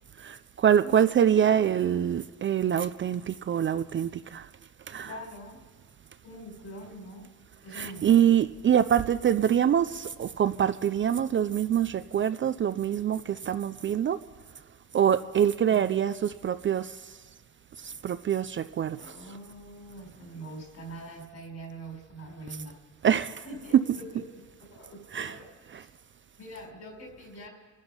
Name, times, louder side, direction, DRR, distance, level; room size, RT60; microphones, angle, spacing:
voice 1, 0.2-4.5 4.9-5.2 7.7-14.2 14.9-17.1 17.8-19.1 23.0-23.4 23.7-24.0 25.1-25.4 25.7-25.8, right 9 dB, 40° right, 12 dB, 0.4 m, -25 dB
voice 2, 5.0-5.6 6.2-7.3 7.6-8.3 19.0-22.8 23.4-25.9 26.4-27.5, right 1 dB, 55° left, 2 dB, 4.4 m, -44 dB
26.5 x 9.8 x 5.5 m, 1.4 s
cardioid pair, 155°, 32 cm